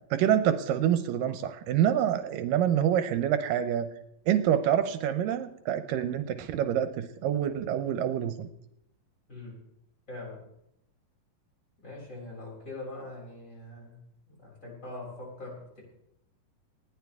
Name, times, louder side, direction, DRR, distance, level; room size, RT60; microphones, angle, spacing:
voice 1, 0.1-3.9 4.3-8.5, right 10 dB, 80° right, 10 dB, 2.4 m, -26 dB
voice 2, 9.3-9.6 10.1-10.4 11.8-14.0 14.3-15.8, left 2 dB, 20° left, -4 dB, 6.9 m, -42 dB
20.0 x 14.5 x 3.6 m, 0.80 s
omnidirectional pair, 3.9 m